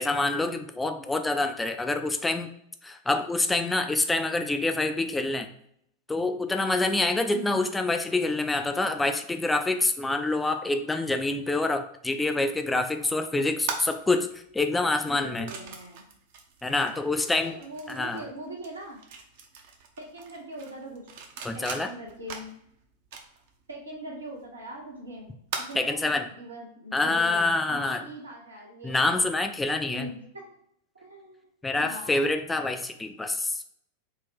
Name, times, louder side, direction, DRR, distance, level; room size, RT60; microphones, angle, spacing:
voice 1, 0.0-2.5 2.8-5.5 6.1-14.3 14.5-15.5 16.6-17.6 17.9-18.2 21.4-21.9 25.8-26.3 26.9-28.0 28.8-30.0 31.6-33.7, left 2 dB, 10° left, 7 dB, 0.3 m, -26 dB
sound 1, 13.6-26.1, right 5 dB, 50° right, 0.6 m, -42 dB
voice 2, 15.1-16.1 16.8-19.0 20.0-21.1 21.5-22.6 23.7-29.3 29.6-30.2 30.9-31.5 31.8-32.6, right 1 dB, 80° right, -1 dB, 1.0 m, -42 dB
3.9 x 2.1 x 4.2 m, 0.70 s
figure-of-eight pair, 90°, 0 cm